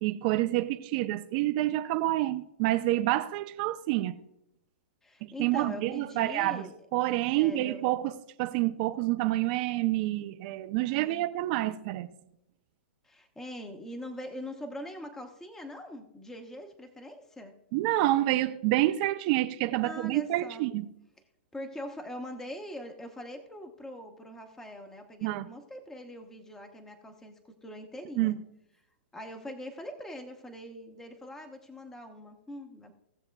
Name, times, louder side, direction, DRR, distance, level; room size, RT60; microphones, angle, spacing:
voice 1, 0.0-4.1 5.2-6.7 6.9-12.1 17.7-20.8 25.2-25.5 28.2-28.4, right 16 dB, 40° right, 0.6 m, -28 dB
voice 2, 5.0-6.7 7.3-7.9 10.8-11.3 13.0-17.5 19.8-20.6 21.5-28.4 29.1-32.9, equal, 5° left, 0.9 m, -42 dB
18.0 x 6.9 x 2.3 m
hypercardioid pair, 145°, 6 cm